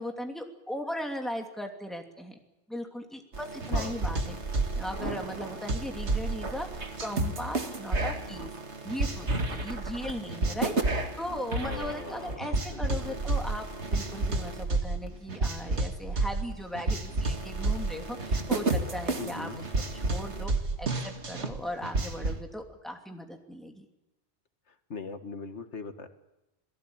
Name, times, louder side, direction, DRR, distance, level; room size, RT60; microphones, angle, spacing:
voice 1, 0.0-2.4 2.7-4.4 4.7-8.5 8.8-10.7 11.2-19.5 19.9-20.5 20.8-23.8, left 1 dB, ahead, 3 dB, 2.9 m, -38 dB
sound 1, 3.3-22.4, right 2 dB, 75° right, 2.3 m, -31 dB
voice 2, 11.6-13.2 19.2-19.6 24.7-26.1, left 4 dB, 80° left, 8 dB, 2.0 m, -40 dB
27.0 x 18.5 x 8.8 m, 0.98 s
omnidirectional pair, 1.2 m